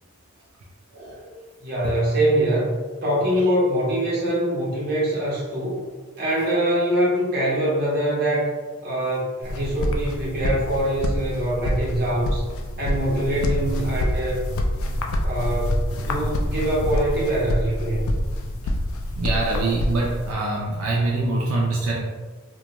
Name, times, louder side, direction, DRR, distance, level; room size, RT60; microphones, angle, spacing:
voice 1, 0.9-1.3 1.8-1.9 3.1-3.4 19.1-22.0, right 2 dB, 80° right, -4 dB, 0.4 m, -25 dB
voice 2, 1.6-2.7 3.0-5.8 6.2-8.5 8.8-12.4 12.8-14.4 15.2-18.1, right 1 dB, 45° right, -6 dB, 0.9 m, -23 dB
sound 1, 9.4-20.3, left 1 dB, 70° left, 0.3 m, -26 dB
2.4 x 2.1 x 2.9 m, 1.4 s
head